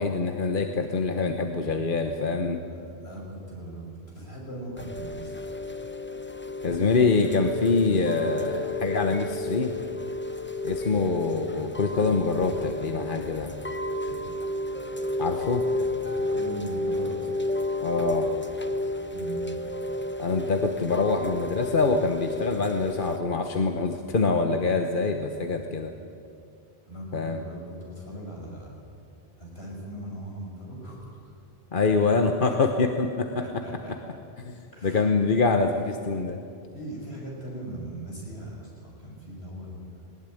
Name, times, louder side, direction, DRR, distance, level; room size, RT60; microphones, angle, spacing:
voice 1, 0.0-2.6 6.6-9.7 10.6-13.5 15.2-15.6 17.8-18.3 20.2-25.9 27.1-27.4 31.7-33.3 34.4-34.5 34.8-36.4, left 4 dB, 50° left, 5 dB, 1.2 m, -25 dB
voice 2, 2.7-5.4 14.0-14.1 16.0-17.3 18.7-18.8 19.1-19.4 26.9-28.9 29.4-31.3 32.4-32.6 33.4-33.9 34.7-35.1 36.7-40.1, right 1 dB, 70° left, -2 dB, 6.7 m, -39 dB
Chime / Rain, 4.8-23.2, left 2 dB, 10° left, 0.9 m, -32 dB
19.5 x 19.5 x 9.2 m, 2.5 s
omnidirectional pair, 1.1 m